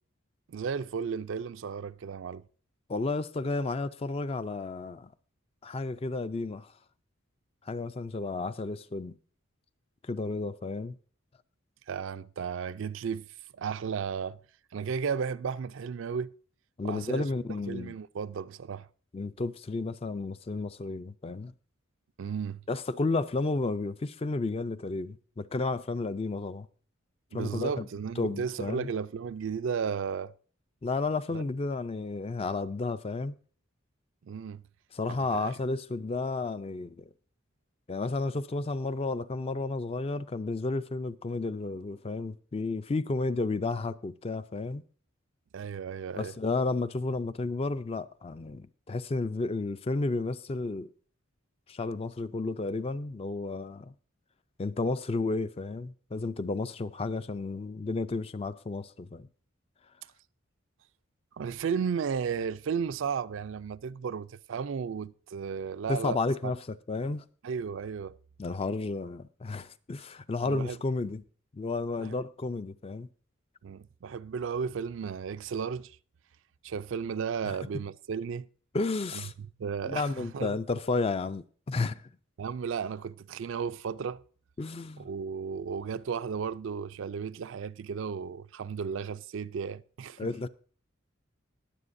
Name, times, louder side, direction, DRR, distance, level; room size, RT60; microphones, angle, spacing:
voice 1, 0.5-2.4 11.9-13.3 13.5-14.4 14.7-16.3 16.8-17.2 17.7-18.9 22.2-22.6 27.3-30.3 31.3-31.4 34.2-34.6 35.1-35.6 45.5-46.3 61.4-66.2 67.4-68.2 70.4-70.8 72.0-72.1 73.6-76.0 76.6-78.5 79.1-79.2 79.6-80.5 82.4-84.2 85.0-90.3, right 6 dB, 65° right, 0.4 m, -34 dB
voice 2, 2.9-5.1 5.6-6.7 7.7-9.1 10.0-11.0 16.8-17.9 19.1-21.5 22.7-26.7 27.3-27.9 28.2-28.9 30.8-33.4 34.9-37.0 37.9-44.8 46.2-50.9 51.7-53.9 54.6-59.3 65.9-67.2 68.4-71.2 71.5-73.1 77.5-77.6 78.7-79.3 79.8-82.0 84.6-85.1 90.2-90.5, left 3 dB, 30° left, 0.4 m, -32 dB
21.0 x 7.6 x 2.6 m
head